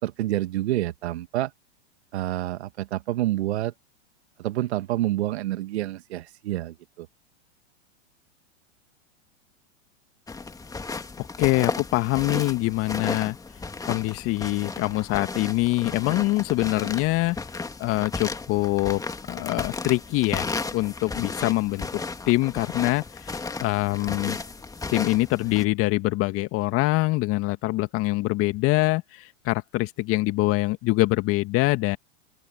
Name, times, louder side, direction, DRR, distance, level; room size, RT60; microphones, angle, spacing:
voice 1, 0.0-1.5 2.1-3.7 4.4-7.1, right 15 dB, 65° right, 1.8 m, -28 dB
sound 1, 10.3-25.6, left 3 dB, 10° left, 2.2 m, -34 dB
voice 2, 11.2-13.4 13.9-17.4 17.8-19.0 19.3-21.9 22.3-23.3 23.6-24.4 24.9-32.0, left 20 dB, 40° left, 2.0 m, -24 dB
open air
hypercardioid pair, 110°, 35 cm